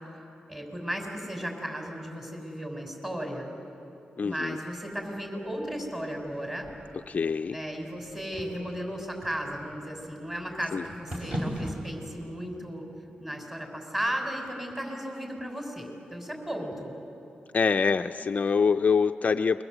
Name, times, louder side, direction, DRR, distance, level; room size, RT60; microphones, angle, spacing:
voice 1, 0.5-3.5 4.2-6.7 7.5-12.9 13.2-16.9, equal, 15° right, 1 dB, 6.3 m, -35 dB
voice 2, 4.2-4.6 6.9-7.6 10.7-10.9 17.5-19.6, left 5 dB, 50° left, 7 dB, 0.5 m, -25 dB
sound 1, 4.8-11.8, equal, 35° right, 5.5 m, -41 dB
29.0 x 23.0 x 8.1 m, 2.8 s
cardioid pair, 80°, 3 cm